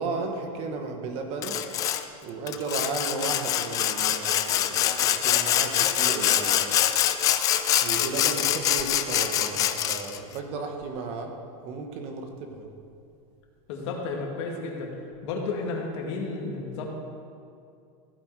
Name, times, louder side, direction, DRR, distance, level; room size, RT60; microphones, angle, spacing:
voice 1, 0.0-1.6 2.2-6.7 7.8-11.3 11.6-12.7, right 4 dB, 35° right, 4 dB, 1.2 m, -34 dB
Sawing, 1.4-2.0 2.5-10.2, left 11 dB, 20° left, 0.3 m, -24 dB
voice 2, 13.7-14.9 15.2-16.9, left 3 dB, 55° left, 0 dB, 2.2 m, -32 dB
15.0 x 8.5 x 4.7 m, 2.5 s
supercardioid pair, 175°, 18 cm